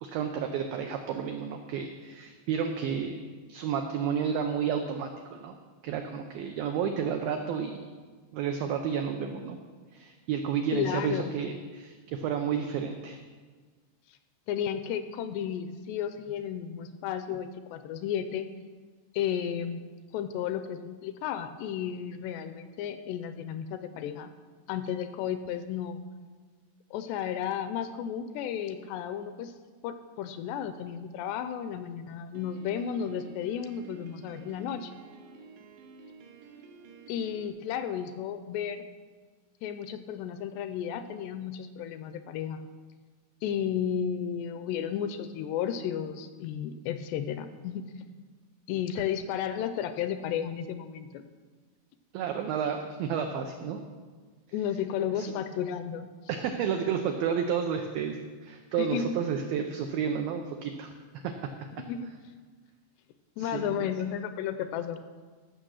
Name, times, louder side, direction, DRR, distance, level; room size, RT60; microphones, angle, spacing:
voice 1, 0.0-3.2 3.5-5.6 5.8-7.9 8.3-9.6 9.9-13.2 52.1-53.8 55.2-55.3 56.3-60.9 61.2-61.3 63.4-63.9, right 7 dB, 90° right, 5 dB, 2.0 m, -31 dB
voice 2, 10.7-11.3 14.1-14.2 14.5-18.5 19.1-19.8 20.1-24.3 24.7-26.0 26.9-29.5 29.8-34.9 37.1-38.8 39.6-42.7 43.4-47.8 48.7-51.2 54.5-56.1 58.8-59.2 61.8-62.1 63.4-65.0, left 9 dB, 80° left, 10 dB, 2.5 m, -33 dB
Piano, 32.3-37.5, right 4 dB, 70° right, 2.1 m, -51 dB
15.0 x 6.7 x 6.3 m, 1.5 s
omnidirectional pair, 5.1 m